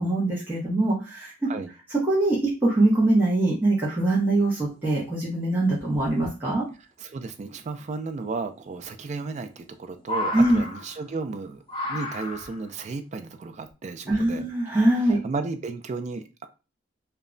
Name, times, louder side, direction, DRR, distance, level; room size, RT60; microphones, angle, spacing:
voice 1, 0.0-1.5 2.0-6.6 10.3-10.6 14.1-15.2, right 2 dB, 10° right, 0.7 m, -23 dB
sound 1, 4.7-4.8 5.1-5.2 5.8-6.3 7.9-8.0 9.2-9.7 10.0-11.2 11.7-12.7 13.7-13.8, left 1 dB, 25° left, 0.5 m, -33 dB
voice 2, 7.0-11.6 11.9-14.4 15.2-16.5, right 4 dB, 35° right, 0.3 m, -34 dB
2.2 x 2.1 x 3.6 m
head